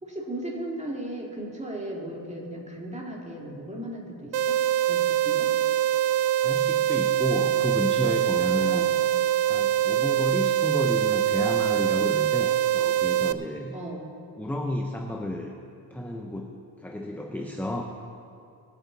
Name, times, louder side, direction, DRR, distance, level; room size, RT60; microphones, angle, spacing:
voice 1, 0.0-5.5 8.7-8.9 13.7-14.1, right 1 dB, 15° right, -2 dB, 2.5 m, -36 dB
sound 1, 4.3-13.3, right 11 dB, 65° right, 0.6 m, -24 dB
voice 2, 6.4-8.9 9.5-13.8 14.4-15.5 15.9-17.8, left 1 dB, 5° left, 2 dB, 0.7 m, -31 dB
23.5 x 8.5 x 4.0 m, 2.5 s
cardioid pair, 125°, 46 cm